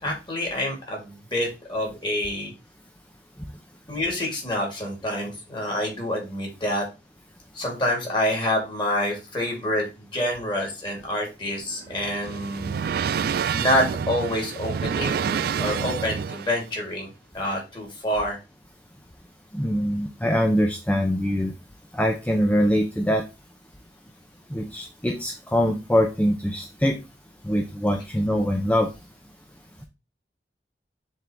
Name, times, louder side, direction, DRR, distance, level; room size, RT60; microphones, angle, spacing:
voice 1, 0.0-2.5 3.9-6.9 7.5-12.8 13.5-17.1 17.3-18.4, left 1 dB, 25° left, -1 dB, 3.1 m, -27 dB
sound 1, 11.6-16.6, right 7 dB, 60° right, 0.3 m, -28 dB
voice 2, 19.5-21.5 21.9-23.2 24.5-27.0 27.4-28.9, equal, 10° left, 3 dB, 0.7 m, -23 dB
7.3 x 3.9 x 3.4 m, 0.28 s
head